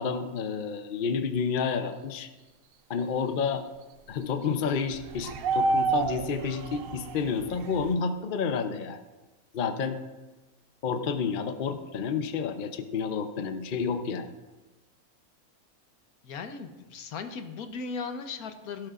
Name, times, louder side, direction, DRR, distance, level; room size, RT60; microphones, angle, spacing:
voice 1, 0.0-2.3 2.9-3.6 4.1-9.0 9.5-10.0 10.8-14.3, left 5 dB, 45° left, 8 dB, 0.7 m, -30 dB
sound 1, 4.9-7.9, right 3 dB, 75° right, 0.5 m, -29 dB
voice 2, 16.2-18.9, left 5 dB, 85° left, 8 dB, 1.4 m, -37 dB
16.0 x 12.5 x 2.5 m, 1.2 s
omnidirectional pair, 1.5 m